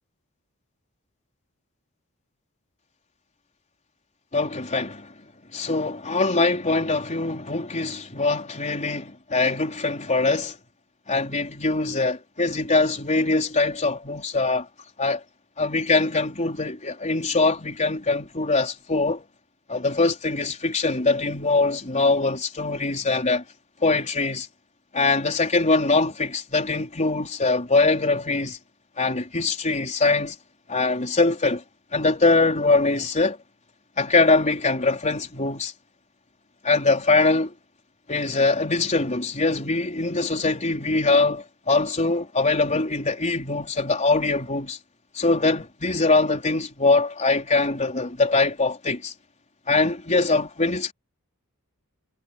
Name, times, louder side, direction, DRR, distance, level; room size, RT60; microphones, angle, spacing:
voice 1, 4.3-5.1 5.5-10.5 11.1-14.7 15.0-15.2 15.6-19.2 19.7-23.4 23.8-24.5 24.9-28.6 29.0-30.4 30.7-31.6 31.9-33.4 34.0-35.7 36.6-37.5 38.1-44.8 45.1-49.1 49.7-50.9, left 3 dB, 35° left, 4.3 m, -22 dB
head